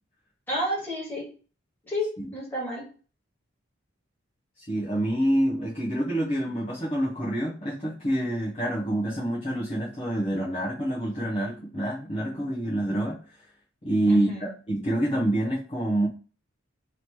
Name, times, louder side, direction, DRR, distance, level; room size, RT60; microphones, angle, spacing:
voice 1, 0.5-1.3 1.9-2.8 14.1-14.5, equal, 10° left, -6 dB, 1.8 m, -31 dB
voice 2, 4.6-13.5 13.8-16.1, right 1 dB, 25° left, -7 dB, 0.8 m, -27 dB
3.1 x 3.1 x 4.3 m, 0.38 s
head